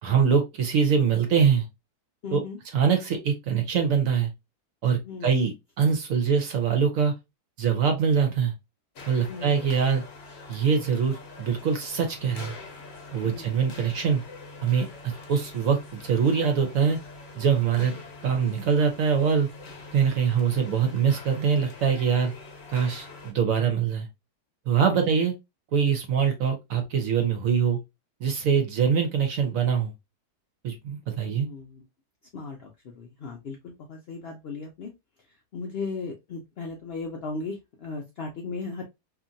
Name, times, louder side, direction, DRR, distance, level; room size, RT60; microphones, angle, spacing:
voice 1, 0.0-1.7 2.3-2.4 2.7-4.3 4.8-7.1 7.6-8.5 9.1-10.0 10.5-12.5 13.1-14.2 14.6-17.0 17.3-17.9 18.2-19.5 19.9-22.3 22.7-24.1 24.7-25.3 25.7-27.8 28.2-29.9 30.6-31.5, right 6 dB, 65° right, 0.9 m, -23 dB
voice 2, 2.2-2.6 5.1-5.3 9.3-9.6 13.2-13.5 17.8-18.0 24.9-25.1 31.1-31.9 32.3-34.9 35.5-38.8, left 4 dB, 85° left, 0.5 m, -37 dB
sound 1, 9.0-23.3, left 3 dB, 50° left, 0.9 m, -44 dB
2.8 x 2.5 x 2.5 m
omnidirectional pair, 1.7 m